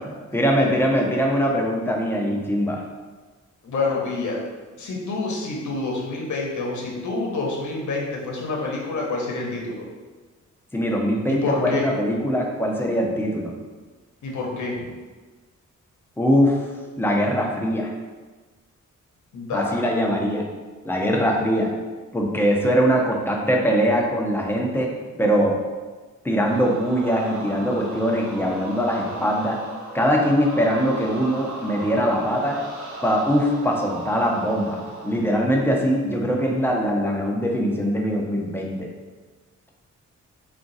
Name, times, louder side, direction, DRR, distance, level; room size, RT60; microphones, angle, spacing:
voice 1, 0.1-2.8 10.7-13.5 16.2-16.7 17.0-17.9 19.5-20.4 20.8-21.7 22.1-24.9 25.2-25.6 26.2-29.6 29.9-32.6 33.0-38.9, equal, 5° left, -1 dB, 0.6 m, -22 dB
voice 2, 3.6-4.4 4.8-9.9 11.3-11.9 14.2-14.9 19.3-19.7, left 3 dB, 70° left, -2 dB, 0.9 m, -27 dB
sound 1, 26.4-35.3, right 2 dB, 60° right, 0.8 m, -37 dB
3.6 x 2.5 x 3.9 m, 1.3 s
wide cardioid pair, 105°, 30 cm